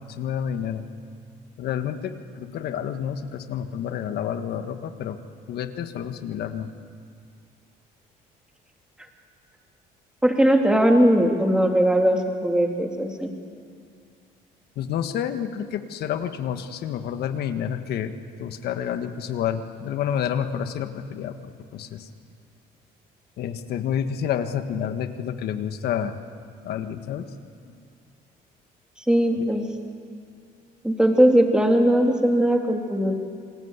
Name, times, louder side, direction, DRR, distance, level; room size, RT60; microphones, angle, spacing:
voice 1, 0.2-0.8 1.6-5.2 5.5-6.7 14.8-18.1 18.4-21.3 21.7-22.0 23.4-26.1 26.6-27.3, left 9 dB, 70° left, 8 dB, 1.6 m, -29 dB
voice 2, 10.2-13.3 29.1-29.6 30.8-33.1, right 1 dB, 5° right, 2 dB, 3.0 m, -19 dB
27.5 x 19.5 x 8.3 m, 2.3 s
cardioid pair, 110°, 17 cm